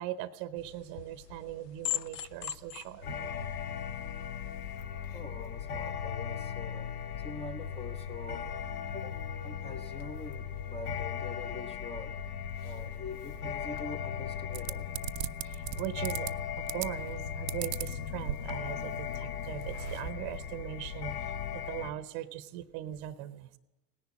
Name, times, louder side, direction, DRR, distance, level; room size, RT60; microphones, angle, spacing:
voice 1, 0.0-3.1 15.4-16.3 16.6-23.5, right 13 dB, 40° right, 14 dB, 0.8 m, -40 dB
sound 1, 0.6-4.8, left 12 dB, 75° left, 0.7 m, -41 dB
sound 2, 3.0-21.9, left 7 dB, 60° left, 1.3 m, -38 dB
voice 2, 5.1-7.0 7.2-8.5 8.9-12.2 12.6-14.9, left 3 dB, 15° left, 11 dB, 0.7 m, -44 dB
sound 3, 14.5-16.3 16.7-17.1 17.5-18.8 19.1-19.2 19.4-20.1, right 13 dB, 80° right, 0.6 m, -37 dB
18.0 x 10.5 x 7.3 m, 1.0 s
figure-of-eight pair, 90°, 49 cm